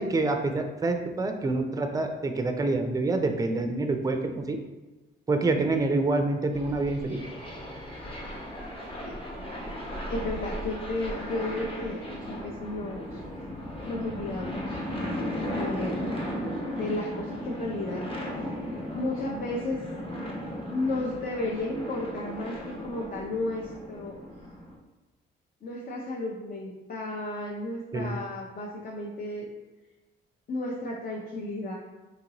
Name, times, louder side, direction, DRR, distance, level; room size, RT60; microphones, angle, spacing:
voice 1, 0.0-4.6 5.3-7.2 27.9-28.1, right 2 dB, 15° right, 5 dB, 0.4 m, -27 dB
sound 1, 6.5-24.7, equal, 25° left, 0.9 m, -36 dB
voice 2, 10.1-13.2 13.9-14.8 15.5-16.0 16.8-18.0 18.4-18.6 18.9-19.8 20.7-22.5 22.8-24.1 25.6-29.5 30.5-31.7, left 2 dB, 50° left, -2 dB, 0.6 m, -33 dB
4.0 x 2.5 x 2.9 m, 1.1 s
cardioid pair, 90°, 20 cm